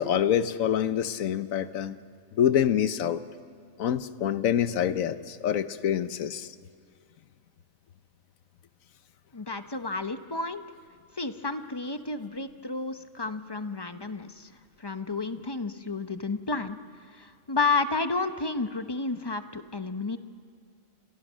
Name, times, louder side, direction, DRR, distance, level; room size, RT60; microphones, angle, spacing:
voice 1, 0.0-1.9 2.3-3.2 3.8-6.5, left 9 dB, 80° left, 12 dB, 1.3 m, -26 dB
voice 2, 9.3-10.6 11.1-14.5 14.8-16.8 17.2-20.2, left 3 dB, 25° left, 9 dB, 0.7 m, -31 dB
29.5 x 26.5 x 6.3 m, 2.2 s
omnidirectional pair, 1.4 m